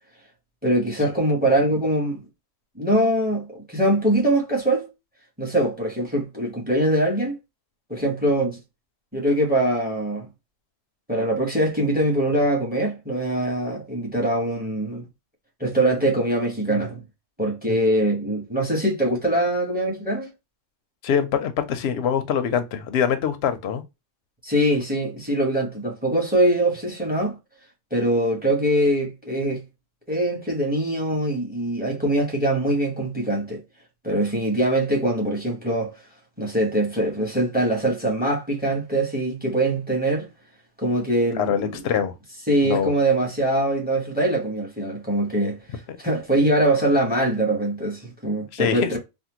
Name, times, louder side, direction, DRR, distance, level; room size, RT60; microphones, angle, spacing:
voice 1, 0.6-2.2 2.8-4.9 5.4-7.4 7.9-8.6 9.1-10.3 11.1-15.0 15.6-17.0 17.4-20.3 24.4-27.4 27.9-29.6 30.1-33.6 34.0-35.9 36.4-40.3 40.8-41.8 42.5-49.0, right 1 dB, 10° right, 0.9 m, -23 dB
voice 2, 21.0-23.8 41.3-42.1 42.6-42.9 48.5-49.0, left 8 dB, 65° left, 0.8 m, -24 dB
3.5 x 2.2 x 2.8 m
omnidirectional pair, 1.3 m